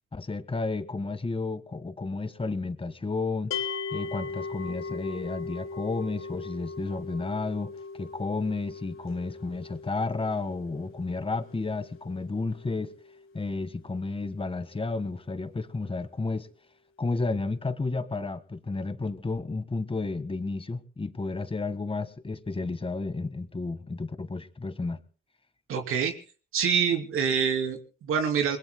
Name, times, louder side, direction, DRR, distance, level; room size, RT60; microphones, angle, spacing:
voice 1, 0.1-3.5 3.9-12.9 13.3-16.5 17.0-25.0, left 3 dB, 25° left, 1.6 m, -32 dB
sound 1, 3.5-14.7, left 4 dB, 80° left, 1.4 m, -40 dB
voice 2, 25.7-26.1 26.5-28.6, right 7 dB, 85° right, 3.0 m, -26 dB
28.0 x 21.5 x 2.2 m
cardioid pair, 75°, 21 cm